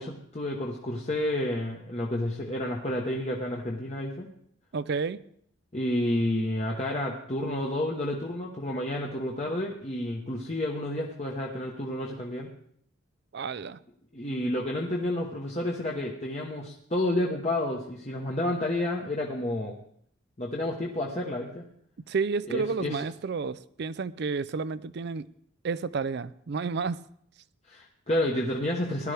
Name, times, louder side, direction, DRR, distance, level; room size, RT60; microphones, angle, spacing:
voice 1, 0.0-4.3 5.7-12.5 14.1-19.8 20.4-21.6 22.5-23.0 27.7-29.1, left 1 dB, 30° left, 1.1 m, -30 dB
voice 2, 4.7-5.2 13.3-13.8 22.1-25.3 25.6-27.1, right 4 dB, 55° right, 0.4 m, -31 dB
17.0 x 11.5 x 3.4 m
head